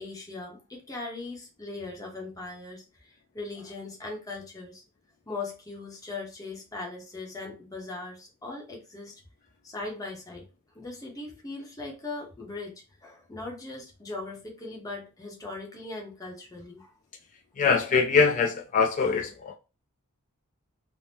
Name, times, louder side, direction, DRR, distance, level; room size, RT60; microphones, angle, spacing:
voice 1, 0.0-4.8 5.3-9.1 9.6-10.5 10.7-16.9, left 3 dB, 15° left, 0.7 m, -39 dB
voice 2, 17.6-19.5, left 5 dB, 35° left, 0.3 m, -23 dB
3.4 x 2.0 x 2.7 m
head